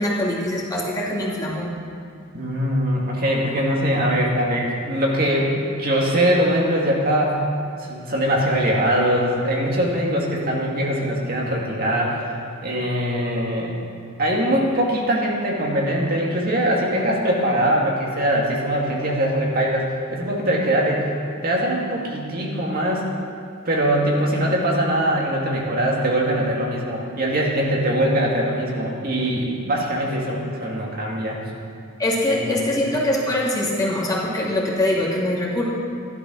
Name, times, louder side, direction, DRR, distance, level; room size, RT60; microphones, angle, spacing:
voice 1, 0.0-1.7 32.0-35.6, left 1 dB, 20° left, -5 dB, 2.7 m, -23 dB
voice 2, 2.3-7.4 7.8-12.3 12.6-13.7 14.2-21.1 21.4-23.1 23.7-31.4 32.3-32.8, equal, 45° right, -2 dB, 2.4 m, -22 dB
14.0 x 12.0 x 6.2 m, 2.5 s
head